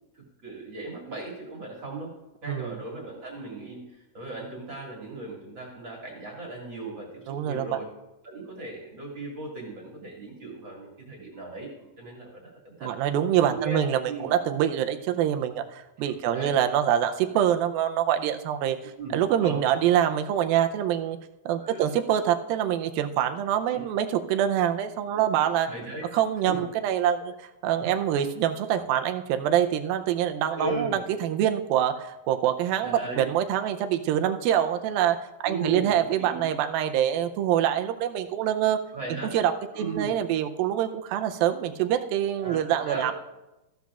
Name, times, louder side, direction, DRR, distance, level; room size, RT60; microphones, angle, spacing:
voice 1, 0.1-2.1 2.4-7.9 8.2-12.9 13.3-14.3 16.0-16.6 19.0-19.2 19.4-19.6 21.6-21.9 23.7-23.8 25.1-25.2 25.6-26.1 26.5-26.7 27.8-27.9 30.5-31.0 32.8-33.3 35.4-36.4 38.9-39.3 39.7-40.1 42.4-43.1, right 3 dB, 40° right, -3 dB, 2.2 m, -37 dB
voice 2, 7.3-7.8 12.8-21.2 21.5-25.7 26.1-27.3 27.6-38.8 39.3-43.1, right 10 dB, 90° right, 7 dB, 2.4 m, -25 dB
14.5 x 11.5 x 2.4 m, 0.98 s
omnidirectional pair, 4.2 m